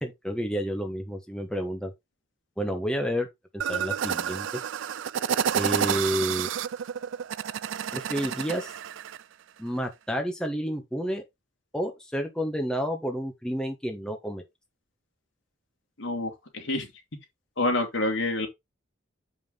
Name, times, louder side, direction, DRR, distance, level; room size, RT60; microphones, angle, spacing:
voice 1, 0.0-1.9 2.6-3.3 3.5-4.5 5.5-6.5 7.9-8.7 9.6-11.2 11.7-14.4, equal, 5° left, 1.3 m, -30 dB
sound 1, 3.6-9.2, right 8 dB, 75° right, 0.4 m, -30 dB
voice 2, 16.0-16.9 17.6-18.5, left 2 dB, 80° left, 2.8 m, -27 dB
7.4 x 5.4 x 3.8 m
head